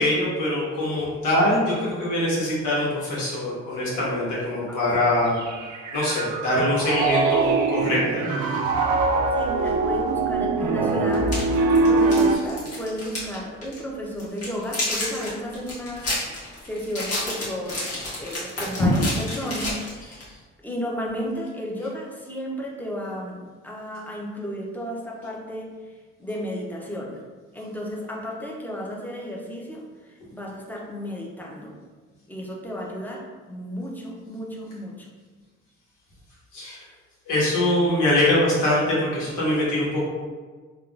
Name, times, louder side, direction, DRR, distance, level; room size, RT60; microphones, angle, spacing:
voice 1, 0.0-5.4 5.9-8.4 12.3-12.4 18.8-18.9 36.5-36.8 37.3-40.1, left 1 dB, 85° left, -6 dB, 1.2 m, -23 dB
Piano, 5.4-12.4, right 3 dB, 80° right, 0.5 m, -23 dB
voice 2, 9.3-16.1 16.6-20.3 20.6-25.7 26.2-27.2 27.5-29.8 30.3-31.8 32.3-35.1, equal, 5° left, -2 dB, 0.6 m, -33 dB
sound 1, 11.1-13.4 13.6-13.8 14.2-20.3, left 1 dB, 55° left, 1.4 m, -30 dB
3.5 x 2.3 x 2.4 m, 1.4 s
cardioid pair, 90°, 30 cm